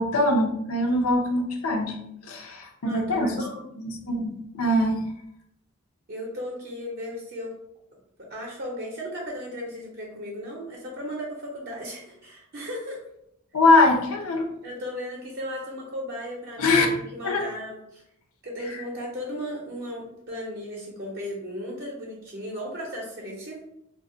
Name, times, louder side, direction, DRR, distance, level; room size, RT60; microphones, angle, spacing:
voice 1, 0.0-2.0 2.2-3.3 3.8-5.0 13.5-14.5 16.6-16.9 17.2-17.4, left 2 dB, 70° left, 3 dB, 0.5 m, -22 dB
voice 2, 2.8-3.6 6.1-7.5 8.3-13.0 14.6-18.0 18.4-23.6, equal, 45° right, -3 dB, 0.6 m, -35 dB
2.3 x 2.1 x 3.7 m, 0.79 s
head